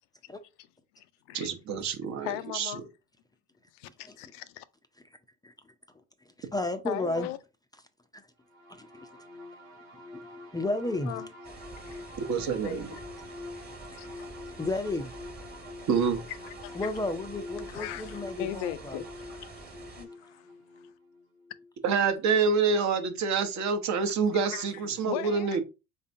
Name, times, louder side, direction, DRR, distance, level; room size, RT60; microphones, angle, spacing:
voice 1, 1.3-2.7 12.3-12.9 15.9-16.2 21.8-25.6, right 5 dB, 45° right, 0.8 m, -27 dB
voice 2, 2.2-2.8 3.7-4.6 6.9-7.4 11.1-11.3 11.9-12.0 12.6-13.0 13.9-14.3 16.5-16.9 17.7-19.5 19.9-20.5 24.0-24.1 24.4-25.6, left 14 dB, 70° left, 0.5 m, -39 dB
voice 3, 6.4-7.3 8.1-8.2 8.7-8.9 10.5-11.1 14.6-15.1 16.7-19.0, left 2 dB, 10° left, 0.4 m, -32 dB
sound 1, 8.4-21.9, left 2 dB, 90° right, 1.3 m, -45 dB
sound 2, 11.4-20.0, right 3 dB, 25° right, 1.2 m, -48 dB
3.7 x 3.4 x 2.6 m
hypercardioid pair, 70°, 38 cm